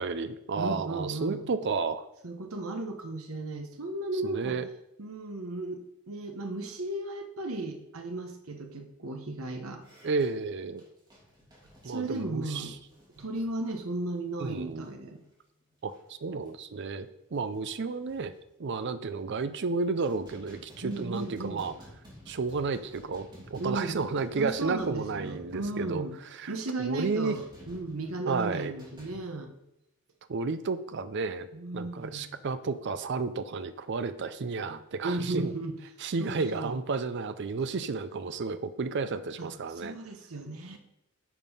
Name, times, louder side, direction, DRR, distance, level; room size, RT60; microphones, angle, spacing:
voice 1, 0.0-2.0 4.2-4.7 10.0-10.8 11.8-12.7 14.4-14.9 15.8-15.9 16.2-18.3 18.6-21.7 22.3-26.0 26.3-26.5 26.8-27.4 28.3-28.7 30.3-31.5 31.7-35.5 36.0-40.0, right 4 dB, 55° right, 12 dB, 0.5 m, -32 dB
voice 2, 0.6-1.5 2.2-4.6 5.0-9.8 11.8-12.7 13.2-15.2 20.8-21.6 23.6-24.0 24.4-26.2 26.5-29.5 31.5-32.4 35.0-35.7 36.2-36.8 39.4-40.8, right 2 dB, 70° right, 4 dB, 1.1 m, -35 dB
sound 1, 9.8-14.9 15.1-15.3 15.7-16.1 16.5-16.6 17.0-17.1 17.3-18.4 19.0-19.5 19.8-26.2 27.3-28.1 28.8-29.2, equal, 20° right, 3.0 m, -52 dB
9.4 x 5.4 x 5.5 m, 0.83 s
head